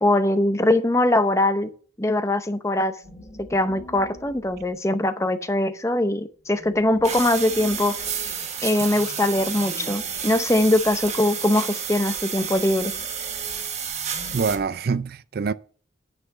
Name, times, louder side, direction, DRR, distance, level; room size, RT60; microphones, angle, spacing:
voice 1, 0.0-1.7 2.0-2.9 3.5-8.0 8.6-12.9, left 1 dB, 15° left, 0.7 m, -22 dB
sound 1, 3.0-5.1 6.4-11.8 12.3-14.7, equal, 40° left, 2.5 m, -46 dB
sound 2, 7.0-14.6, right 7 dB, 35° right, 1.3 m, -30 dB
voice 2, 14.3-15.5, right 5 dB, 50° right, 0.4 m, -25 dB
9.7 x 5.8 x 6.6 m
head